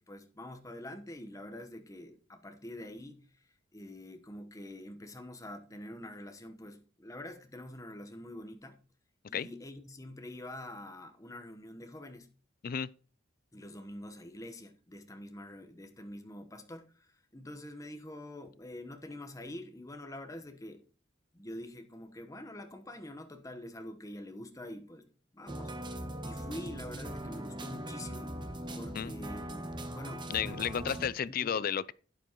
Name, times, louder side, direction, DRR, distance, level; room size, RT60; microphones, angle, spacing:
voice 1, 0.0-3.5 3.7-8.8 9.3-12.3 13.5-20.8 21.3-25.8 26.2-28.4 28.7-30.7 31.3-31.7, left 1 dB, 15° left, 1.1 m, -46 dB
sound 1, 25.5-31.1, right 1 dB, 25° right, 1.0 m, -40 dB
voice 2, 30.3-31.9, left 8 dB, 45° left, 0.4 m, -32 dB
11.5 x 10.0 x 3.0 m
head